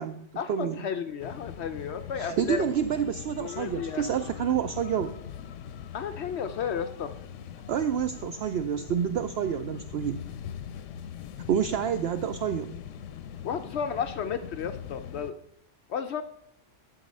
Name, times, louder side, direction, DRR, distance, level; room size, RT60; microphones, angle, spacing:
voice 1, 0.4-2.7 3.4-4.1 5.9-7.1 13.4-15.4 15.9-16.2, left 7 dB, 65° left, 9 dB, 0.9 m, -33 dB
sound 1, 1.2-15.3, left 9 dB, 90° left, 1.0 m, -41 dB
voice 2, 2.2-5.1 7.7-10.2 11.5-12.7, right 8 dB, 65° right, 11 dB, 0.8 m, -28 dB
11.5 x 8.1 x 5.3 m, 0.70 s
omnidirectional pair, 1.3 m